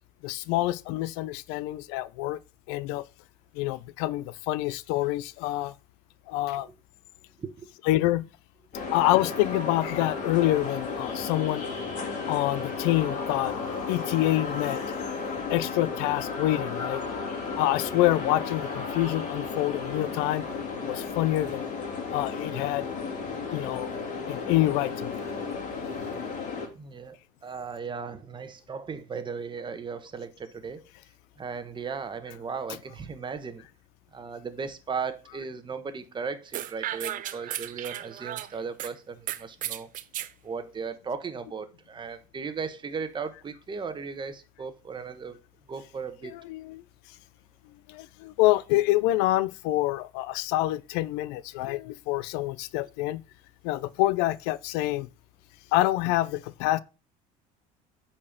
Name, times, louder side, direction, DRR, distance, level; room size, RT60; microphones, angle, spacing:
voice 1, 0.2-2.4 2.7-3.0 3.5-5.7 6.3-6.7 7.8-8.2 8.9-11.7 12.3-13.5 13.9-14.8 15.5-17.0 17.6-20.4 20.8-21.7 22.1-22.9 23.5-23.9 24.3-26.4 46.2-46.8 47.9-53.2 53.6-55.1 55.7-56.8, left 16 dB, 75° left, 0.5 m, -27 dB
sound 1, 8.7-26.7, left 4 dB, 45° left, 2.9 m, -33 dB
voice 2, 26.7-27.2 27.4-30.8 31.4-33.7 34.1-39.9 40.4-45.4 45.7-46.3, right 5 dB, 25° right, 1.1 m, -36 dB
sound 2, 36.5-38.9 39.3-40.3, right 12 dB, 50° right, 0.7 m, -35 dB
8.5 x 4.4 x 5.1 m
supercardioid pair, 100°, 17 cm